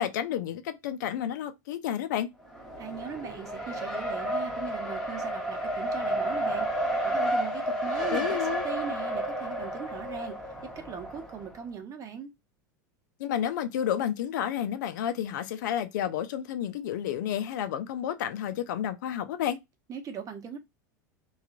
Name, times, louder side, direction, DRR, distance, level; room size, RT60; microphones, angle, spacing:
voice 1, 0.0-2.3 8.0-8.7 13.2-19.6, left 10 dB, 75° left, 0.5 m, -31 dB
Race car auto racing, 2.4-11.5, right 1 dB, 5° left, 0.9 m, -31 dB
voice 2, 2.8-10.4 10.8-12.3 19.9-20.6, right 6 dB, 35° right, 0.8 m, -39 dB
2.9 x 2.3 x 2.3 m
hypercardioid pair, 105°, 10 cm